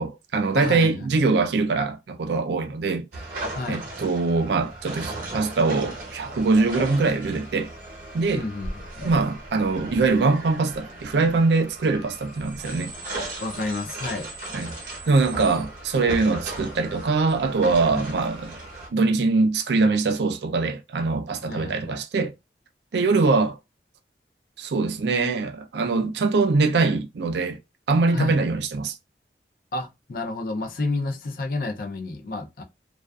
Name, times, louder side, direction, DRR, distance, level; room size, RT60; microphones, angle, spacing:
voice 1, 0.0-3.0 3.3-7.7 8.1-8.5 9.0-12.9 14.5-18.6 18.9-22.3 22.9-23.6 24.6-27.6 27.9-28.9, right 3 dB, 80° right, 0.4 m, -23 dB
voice 2, 0.6-1.1 3.5-3.8 8.4-8.7 9.0-9.1 13.4-14.3 17.9-18.1 21.4-22.0 28.1-28.4 29.7-32.6, left 2 dB, 55° left, 0.4 m, -30 dB
sound 1, 3.1-18.9, right 2 dB, 50° right, 0.8 m, -37 dB
2.4 x 2.3 x 2.3 m
head